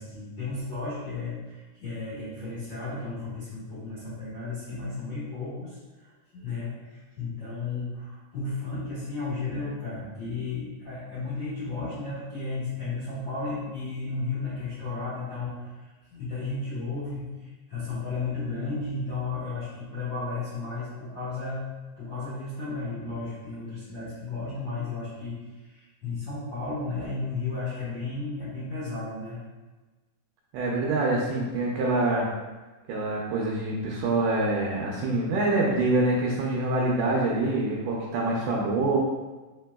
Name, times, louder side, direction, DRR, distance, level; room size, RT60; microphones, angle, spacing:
voice 1, 0.0-21.6 22.0-25.4 25.6-29.4, left 3 dB, 60° left, -12 dB, 1.2 m, -34 dB
voice 2, 30.5-32.3 32.9-39.0, right 2 dB, 80° right, -3 dB, 2.0 m, -25 dB
5.9 x 3.7 x 2.2 m, 1.2 s
omnidirectional pair, 4.1 m